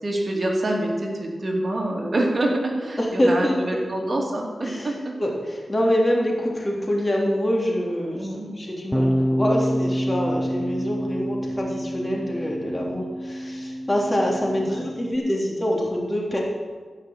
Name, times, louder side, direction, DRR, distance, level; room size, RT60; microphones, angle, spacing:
voice 1, 0.0-5.1 8.1-8.5 14.7-14.8, right 1 dB, 45° right, 0 dB, 2.5 m, -26 dB
voice 2, 3.0-3.8 4.6-4.9 5.2-16.4, equal, 25° left, -2 dB, 3.3 m, -25 dB
Bass guitar, 8.9-15.2, equal, 5° left, 0.9 m, -27 dB
14.5 x 5.8 x 7.8 m, 1.5 s
cardioid pair, 60°, 0 cm